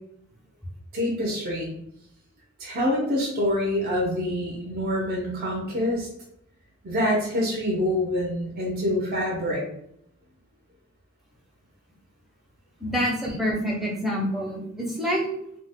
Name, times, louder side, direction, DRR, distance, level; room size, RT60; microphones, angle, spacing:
voice 1, 0.9-1.8 2.6-6.1 6.8-9.6 13.2-13.4, left 1 dB, 45° right, -2 dB, 0.6 m, -26 dB
voice 2, 12.8-15.3, equal, ahead, -2 dB, 0.6 m, -27 dB
2.9 x 2.1 x 3.4 m, 0.74 s
head